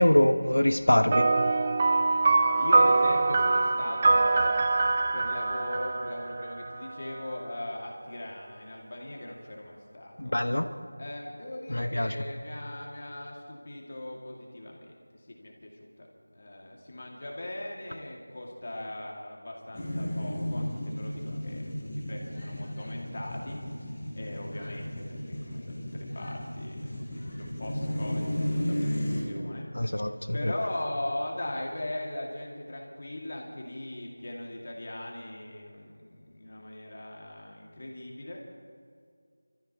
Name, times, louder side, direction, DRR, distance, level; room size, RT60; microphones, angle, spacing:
voice 1, 0.0-1.3 10.2-10.7 11.7-12.1 29.7-30.5, left 1 dB, 80° left, 8 dB, 1.0 m, -24 dB
sound 1, 1.1-6.9, right 3 dB, 25° right, 0.6 m, -24 dB
voice 2, 2.3-4.7 5.1-10.4 11.0-16.1 16.3-38.4, left 1 dB, 40° left, -1 dB, 2.3 m, -39 dB
sound 2, 19.7-29.2, left 1 dB, 10° left, 3.9 m, -33 dB
29.0 x 14.0 x 3.1 m, 2.2 s
figure-of-eight pair, 170°, 0 cm